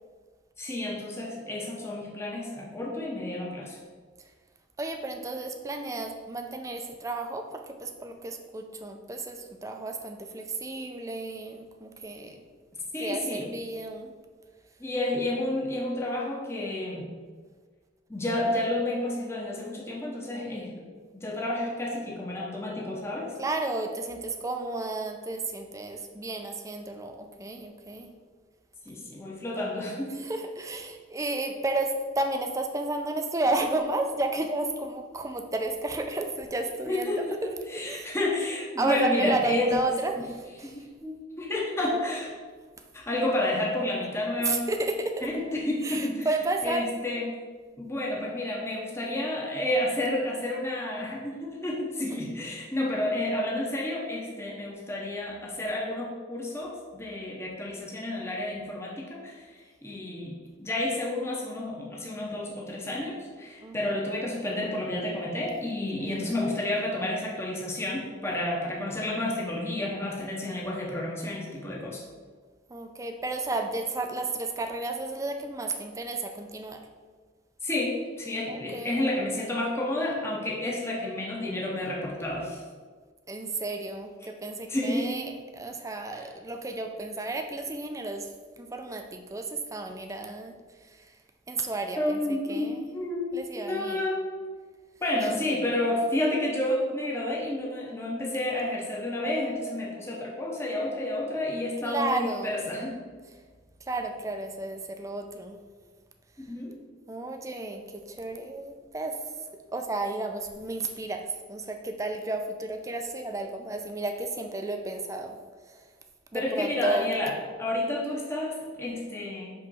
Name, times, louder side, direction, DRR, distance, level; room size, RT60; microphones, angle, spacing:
voice 1, 0.6-3.8 12.9-13.4 14.8-17.1 18.1-20.9 21.1-23.3 28.9-30.2 36.9-39.7 40.2-40.3 40.6-42.3 42.9-44.6 45.2-46.3 46.6-47.4 47.8-72.0 77.6-82.6 84.7-85.2 92.0-94.3 95.0-103.0 106.4-106.8 116.3-117.3 117.6-119.5, left 1 dB, 15° left, -3 dB, 0.8 m, -30 dB
voice 2, 4.8-12.4 13.0-14.1 23.4-28.1 30.1-37.5 37.8-38.1 38.8-40.8 44.4-45.3 45.8-46.9 52.1-52.2 63.6-63.9 66.0-66.3 72.7-76.8 78.5-79.0 83.3-91.2 91.5-92.9 93.3-94.0 101.8-102.6 103.8-105.6 107.1-109.2 109.7-115.3 115.6-115.9 116.3-117.1, right 2 dB, 15° right, 4 dB, 0.4 m, -32 dB
5.4 x 3.2 x 5.4 m, 1.5 s
head